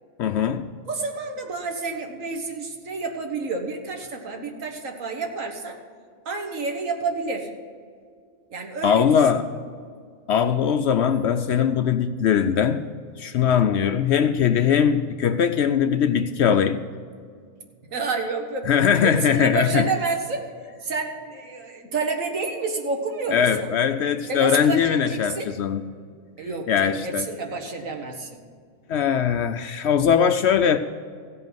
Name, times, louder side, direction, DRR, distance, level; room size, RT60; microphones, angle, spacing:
voice 1, 0.2-0.7 8.8-9.5 10.3-12.9 13.2-16.8 18.7-19.9 23.3-25.9 26.7-27.3 28.9-30.8, left 8 dB, 65° left, 0.7 m, -21 dB
voice 2, 0.9-5.8 6.3-7.5 8.5-9.4 17.9-18.7 19.0-20.4 20.8-23.7 24.3-25.5 26.4-28.4, right 4 dB, 70° right, 1.8 m, -29 dB
15.5 x 5.2 x 9.2 m
omnidirectional pair, 1.4 m